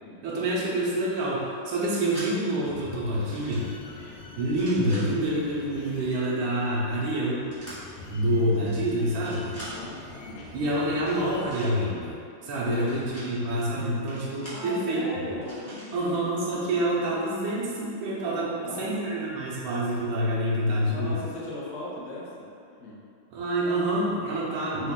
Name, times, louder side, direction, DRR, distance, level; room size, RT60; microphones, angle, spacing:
voice 1, 0.2-3.7 4.4-7.5 8.1-9.6 10.5-12.2 12.4-15.2 15.9-21.2 23.3-24.9, right 1 dB, 75° right, -7 dB, 1.4 m, -27 dB
sound 1, 1.7-2.3 3.1-3.7 4.4-5.0 7.5-7.8 8.5-8.7 9.1-9.7 11.0-11.7 12.7-13.3 14.1-14.6 15.4-15.9, right 1 dB, 15° left, 0.5 m, -44 dB
sound 2, 2.6-11.5, left 3 dB, 85° left, 1.5 m, -44 dB
voice 2, 9.5-10.5 12.6-13.3 13.8-13.9 14.5-16.4 18.5-18.9 20.8-22.5 22.8-23.0, left 1 dB, 60° left, -7 dB, 0.8 m, -38 dB
4.2 x 2.4 x 3.6 m, 2.5 s
omnidirectional pair, 2.3 m